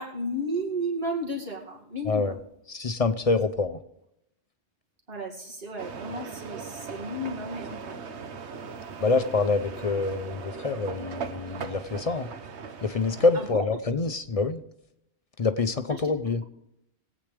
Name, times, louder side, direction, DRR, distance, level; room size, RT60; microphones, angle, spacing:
voice 1, 0.0-2.4 5.1-8.0 13.3-13.7 15.9-16.1, equal, 60° right, -2 dB, 2.5 m, -33 dB
voice 2, 2.7-3.8 9.0-12.3 12.8-14.6 15.4-16.4, left 3 dB, 45° left, 10 dB, 0.5 m, -26 dB
sound 1, 5.8-13.5, right 5 dB, 80° right, 1.2 m, -39 dB
21.0 x 8.7 x 3.3 m, 0.81 s
omnidirectional pair, 1.1 m